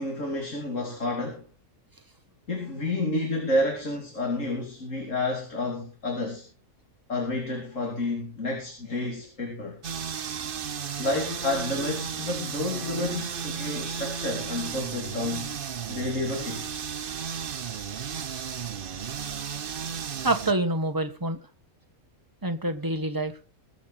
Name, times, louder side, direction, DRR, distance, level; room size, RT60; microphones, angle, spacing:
voice 1, 0.0-1.4 2.5-6.4 7.1-9.8 11.0-15.6 15.9-16.8, left 2 dB, 60° left, 3.3 m, -30 dB
sound 1, 9.8-20.5, right 7 dB, 45° right, 0.9 m, -34 dB
voice 2, 20.2-21.4 22.4-23.3, right 2 dB, 15° right, 1.5 m, -26 dB
22.0 x 8.0 x 4.2 m
omnidirectional pair, 1.5 m